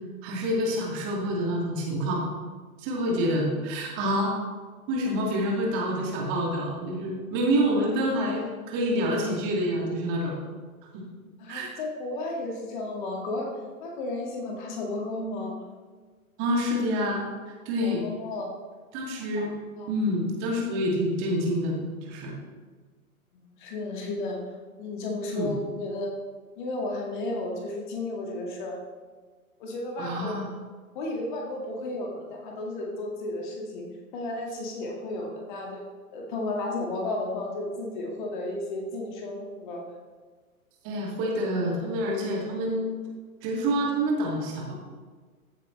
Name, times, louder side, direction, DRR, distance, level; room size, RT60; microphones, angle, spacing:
voice 1, 0.2-2.2 2.8-4.3 4.9-10.3 10.9-11.0 11.5-11.7 16.4-17.2 17.7-18.0 18.9-19.5 19.9-22.3 25.3-25.5 30.0-30.5 40.8-42.9 43.4-44.7, equal, 25° right, -2 dB, 2.3 m, -27 dB
voice 2, 11.4-13.5 13.8-15.6 17.8-18.5 19.4-19.9 23.3-24.4 24.8-26.1 26.6-28.8 29.6-30.4 30.9-33.8 34.1-35.8 36.1-39.8, left 2 dB, 35° left, 0 dB, 2.1 m, -33 dB
14.5 x 8.5 x 3.3 m, 1.5 s
figure-of-eight pair, 120°, 43 cm